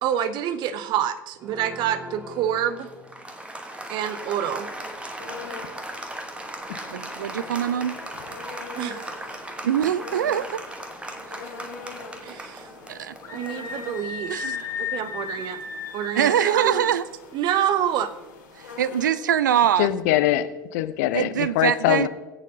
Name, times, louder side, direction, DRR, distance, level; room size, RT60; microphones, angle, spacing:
voice 1, 0.0-2.9 3.9-4.7 8.7-9.1 12.2-12.7 13.3-15.6 15.9-16.8 17.3-18.1, right 10 dB, 45° right, 12 dB, 0.8 m, -27 dB
Applause, 1.4-15.8, right 1 dB, 10° right, 1.2 m, -38 dB
sound 1, 4.6-19.1, left 4 dB, 75° left, 2.8 m, -43 dB
voice 2, 6.9-7.9 9.6-10.6 12.9-13.4 14.3-14.9 16.2-17.0 18.6-19.9 21.1-22.1, right 9 dB, 70° right, 18 dB, 0.4 m, -23 dB
Screaming, 13.2-16.6, left 6 dB, 30° left, 1.8 m, -34 dB
voice 3, 19.8-22.1, left 14 dB, 55° left, 12 dB, 0.7 m, -23 dB
21.0 x 8.4 x 2.8 m, 1.1 s
figure-of-eight pair, 75°, 11 cm